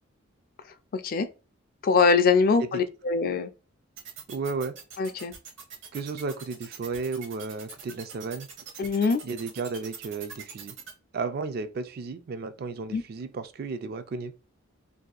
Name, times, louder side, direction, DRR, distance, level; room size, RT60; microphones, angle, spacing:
voice 1, 0.9-1.3 1.8-3.5 5.0-5.3 8.8-9.2 12.9-13.0, left 4 dB, 45° left, 0.4 m, -23 dB
sound 1, 4.0-10.9, right 7 dB, 65° right, 0.9 m, -42 dB
voice 2, 4.3-4.7 5.9-8.5 9.2-10.8 11.1-14.3, right 4 dB, 50° right, 0.3 m, -33 dB
2.7 x 2.4 x 3.8 m
head